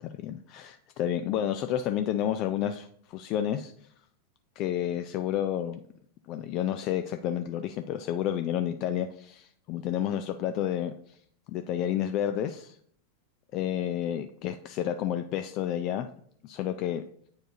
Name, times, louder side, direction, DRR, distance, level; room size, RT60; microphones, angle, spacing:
voice 1, 0.0-3.7 4.6-5.8 6.3-11.2 11.5-12.8 13.5-16.1 16.4-17.0, left 10 dB, 40° left, 9 dB, 0.3 m, -30 dB
8.8 x 4.5 x 2.7 m, 0.62 s
figure-of-eight pair, 90°, 0 cm